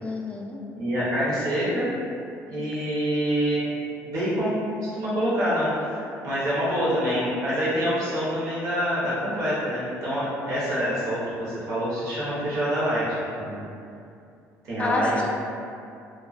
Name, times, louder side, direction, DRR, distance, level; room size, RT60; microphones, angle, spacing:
voice 1, 0.0-0.6 2.5-2.7 14.8-15.2, left 1 dB, 20° left, -1 dB, 0.3 m, -28 dB
voice 2, 0.8-1.9 2.5-3.7 4.0-13.1 13.3-13.6 14.6-15.2, equal, 65° right, -9 dB, 0.8 m, -26 dB
2.2 x 2.2 x 2.4 m, 2.5 s
cardioid pair, 110°, 6 cm